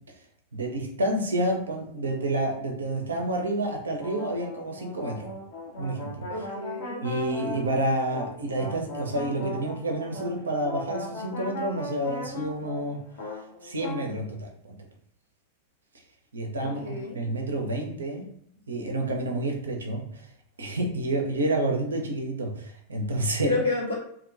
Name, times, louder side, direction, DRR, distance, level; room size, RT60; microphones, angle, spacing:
voice 1, 0.5-5.3 5.8-6.3 7.0-13.0 13.6-14.8 16.3-18.3 18.7-20.3 20.6-23.5, right 1 dB, 70° right, 2 dB, 0.5 m, -29 dB
sound 1, 4.0-14.1, left 1 dB, 50° left, 0.7 m, -38 dB
voice 2, 6.3-7.0 16.6-17.2 23.4-23.9, left 3 dB, 80° left, -7 dB, 1.3 m, -30 dB
2.5 x 2.1 x 2.5 m, 0.69 s
figure-of-eight pair, 90°, 0 cm